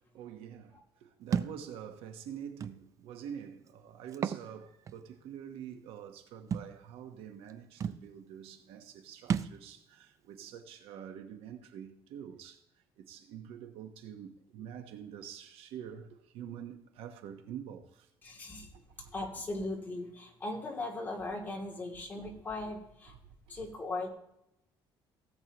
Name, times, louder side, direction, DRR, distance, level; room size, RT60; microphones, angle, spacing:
voice 1, 0.1-12.6 13.0-16.1 16.3-18.1 19.0-19.1 22.2-22.4, right 9 dB, 80° right, 1.2 m, -46 dB
Thump thud, 1.3-1.6 2.6-2.7 4.1-4.4 4.9-5.0 6.5-6.7 7.5-7.6 7.8-8.0 9.3-9.6, right 7 dB, 35° right, 0.4 m, -32 dB
voice 2, 18.2-18.7 19.1-23.1 23.5-24.1, left 2 dB, 20° left, 2.7 m, -38 dB
17.5 x 8.0 x 3.0 m
cardioid pair, 150°, 9 cm